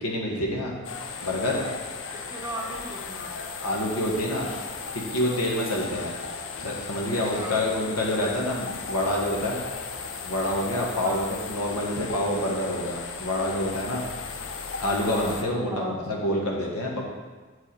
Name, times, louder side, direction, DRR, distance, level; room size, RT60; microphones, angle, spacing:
voice 1, 0.0-0.7 1.2-1.6 3.6-4.5 4.9-6.1 6.6-9.6 10.2-14.0 14.8-17.0, left 1 dB, 85° left, -1 dB, 1.5 m, -27 dB
sound 1, 0.8-15.4, left 5 dB, 55° left, 0.6 m, -36 dB
voice 2, 2.1-3.3 7.3-7.6 11.0-11.3 15.7-16.0, right 1 dB, 15° right, 0 dB, 0.7 m, -37 dB
8.0 x 4.8 x 4.4 m, 1.4 s
head